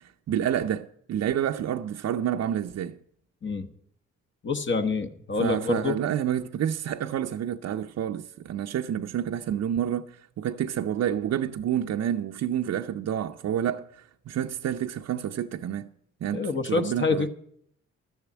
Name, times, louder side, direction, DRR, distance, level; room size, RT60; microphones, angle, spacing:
voice 1, 0.0-3.0 5.4-15.9 16.2-17.3, right 10 dB, 60° right, 0.6 m, -29 dB
voice 2, 4.4-5.9 16.3-17.3, left 4 dB, 40° left, 1.2 m, -27 dB
12.0 x 7.0 x 8.2 m
cardioid pair, 70°, 30 cm